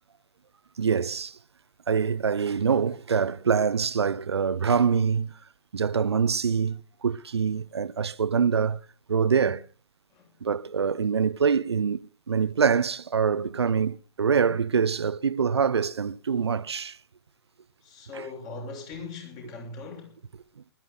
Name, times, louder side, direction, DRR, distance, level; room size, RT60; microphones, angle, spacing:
voice 1, 0.8-1.4 1.9-5.3 5.7-8.8 9.1-9.6 10.4-17.0 18.1-18.3, right 6 dB, 80° right, 0.8 m, -25 dB
voice 2, 17.8-20.2, left 3 dB, 30° left, 6.4 m, -40 dB
20.5 x 13.5 x 3.8 m
hypercardioid pair, 130°, 14 cm